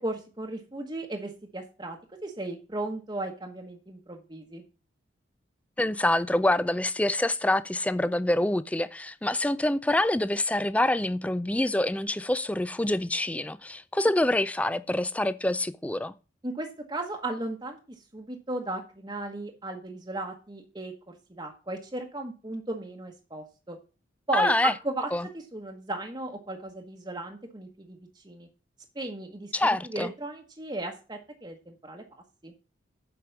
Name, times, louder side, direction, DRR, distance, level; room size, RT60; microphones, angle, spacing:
voice 1, 0.0-4.6 16.4-17.8 18.1-23.8 24.3-28.5 28.9-32.5, right 2 dB, 25° right, 1.1 m, -36 dB
voice 2, 5.8-16.1 24.3-24.7 25.1-25.3 29.5-30.1, left 1 dB, 5° left, 0.4 m, -26 dB
7.8 x 5.2 x 7.1 m
head